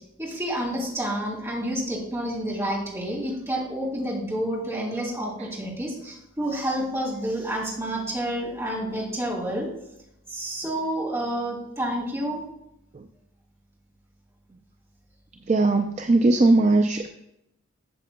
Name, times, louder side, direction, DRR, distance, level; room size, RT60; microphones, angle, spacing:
voice 1, 0.2-9.7 10.3-12.4, right 1 dB, 15° right, -4 dB, 2.8 m, -29 dB
voice 2, 15.5-17.1, right 2 dB, 30° right, 5 dB, 0.4 m, -19 dB
12.5 x 7.6 x 2.2 m, 0.82 s
head